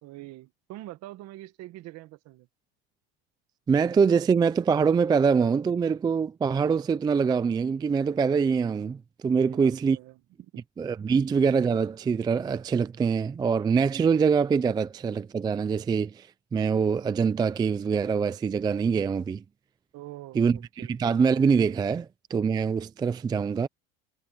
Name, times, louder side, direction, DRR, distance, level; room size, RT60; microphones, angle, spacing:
voice 1, 0.0-2.5 9.4-10.6 19.9-20.9, right 16 dB, 55° right, 1.8 m, -44 dB
voice 2, 3.7-10.0 10.8-19.4 20.4-23.7, right 6 dB, 15° right, 0.4 m, -24 dB
supercardioid pair, 130°, 32 cm